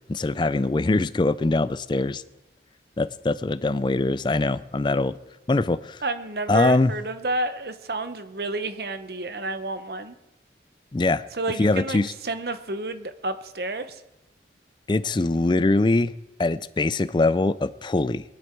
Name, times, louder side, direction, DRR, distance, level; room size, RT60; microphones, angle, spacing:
voice 1, 0.1-2.2 3.0-5.1 5.5-6.0 6.5-6.9 10.9-11.2 11.6-12.1 14.9-16.1 16.4-18.2, left 2 dB, 25° left, 16 dB, 0.4 m, -22 dB
voice 2, 6.0-10.1 11.3-14.0, right 2 dB, 60° right, 10 dB, 0.9 m, -30 dB
21.5 x 10.5 x 4.6 m, 0.97 s
head